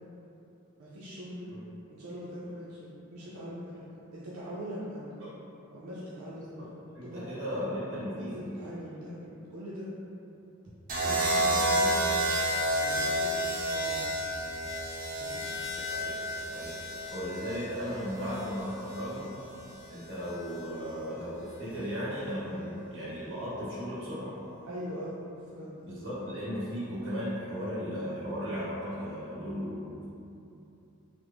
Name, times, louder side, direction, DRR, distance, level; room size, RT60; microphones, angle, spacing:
voice 1, 0.8-1.5 1.9-5.2 5.7-6.5 7.0-9.9 11.0-12.2 12.6-14.0 15.2-15.4 24.6-25.2 25.5-25.7, equal, 90° right, -8 dB, 0.5 m, -42 dB
voice 2, 6.9-8.4 15.9-16.2 16.4-16.8 17.1-19.3 19.9-24.3 25.8-30.1, equal, 55° right, -10 dB, 1.3 m, -36 dB
sound 1, 10.9-19.0 20.2-20.6, right 1 dB, 40° right, 0.5 m, -30 dB
3.4 x 2.0 x 3.4 m, 2.8 s
head